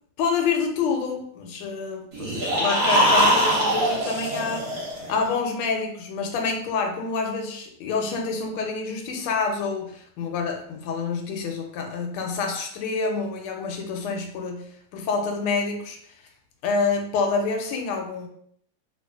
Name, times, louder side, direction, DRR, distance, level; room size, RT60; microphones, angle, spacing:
voice 1, 0.2-4.7 5.1-16.0 16.6-18.3, left 4 dB, 90° left, 3 dB, 1.4 m, -27 dB
sound 1, 2.1-5.3, equal, 50° right, 1.2 m, -22 dB
3.0 x 2.9 x 2.2 m, 0.65 s
omnidirectional pair, 2.3 m